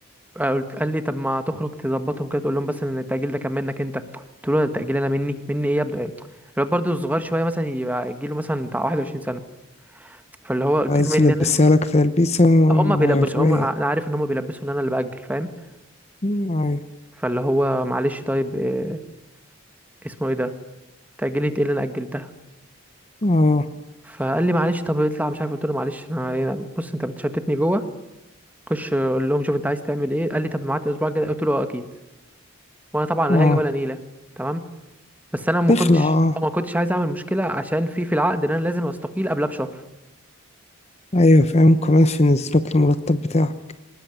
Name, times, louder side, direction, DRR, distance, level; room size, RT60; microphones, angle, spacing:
voice 1, 0.3-6.1 6.6-9.4 10.0-10.2 10.4-11.5 12.7-15.5 17.2-19.0 20.0-20.5 21.2-22.3 24.0-27.8 28.7-31.8 32.9-34.0 34.4-34.6 35.3-36.1 36.4-39.7, equal, 10° right, 9 dB, 1.5 m, -24 dB
voice 2, 10.9-13.6 16.2-16.8 23.2-23.7 33.3-33.6 35.7-36.4 41.1-43.5, left 2 dB, 30° left, 11 dB, 0.9 m, -17 dB
25.0 x 20.5 x 9.3 m, 0.92 s
head